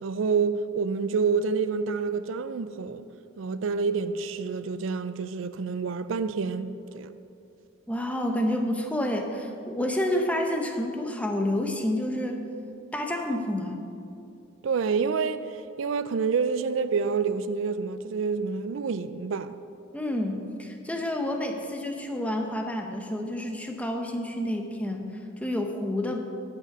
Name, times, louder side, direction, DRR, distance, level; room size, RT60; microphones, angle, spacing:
voice 1, 0.0-3.1 3.4-7.1 14.6-15.5 15.8-19.5, right 5 dB, 80° right, 0.4 m, -28 dB
voice 2, 7.9-12.4 12.9-13.8 19.9-25.1 25.4-26.2, left 1 dB, 5° left, 0.8 m, -29 dB
12.5 x 5.9 x 5.9 m
head